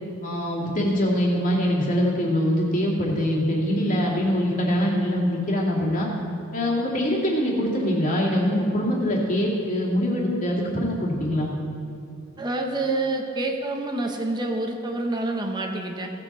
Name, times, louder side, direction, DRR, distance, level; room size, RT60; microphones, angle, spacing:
voice 1, 0.2-6.1 6.5-11.5, equal, 40° left, -4 dB, 2.3 m, -23 dB
voice 2, 12.4-16.1, right 2 dB, 20° right, 2 dB, 1.1 m, -27 dB
17.0 x 7.7 x 4.2 m, 2.5 s
head